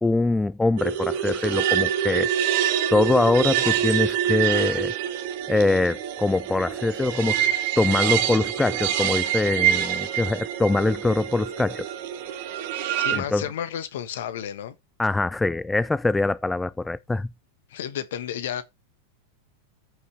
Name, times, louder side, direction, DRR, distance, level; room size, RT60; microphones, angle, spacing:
voice 1, 0.0-2.3 2.9-4.9 5.5-11.9 13.1-13.4 15.0-17.3, left 2 dB, 10° left, 0.4 m, -23 dB
sound 1, 0.8-13.2, right 10 dB, 50° right, 1.6 m, -26 dB
voice 2, 13.0-14.7 17.7-18.6, left 9 dB, 55° left, 1.4 m, -32 dB
14.5 x 5.6 x 3.1 m
figure-of-eight pair, 90°, 0 cm